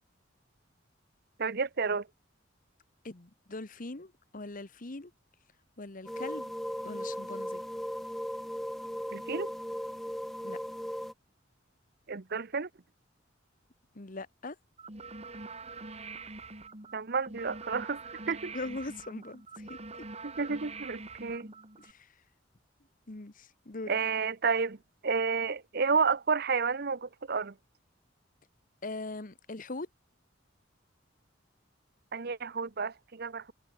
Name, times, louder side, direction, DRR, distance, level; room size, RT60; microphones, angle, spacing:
voice 1, 1.4-2.1 9.1-9.5 12.1-12.7 16.9-18.5 20.2-21.5 23.9-24.8 25.0-27.5 32.1-33.5, right 5 dB, 55° right, 0.9 m, -31 dB
voice 2, 3.0-5.1 5.8-6.5 6.8-7.6 10.4-10.6 13.9-14.6 18.5-19.8 21.8-22.2 23.1-23.9 28.8-29.9, left 2 dB, 45° left, 1.3 m, -41 dB
sound 1, 6.1-11.1, equal, ahead, 0.6 m, -37 dB
sound 2, 14.8-21.9, right 3 dB, 35° right, 4.8 m, -45 dB
head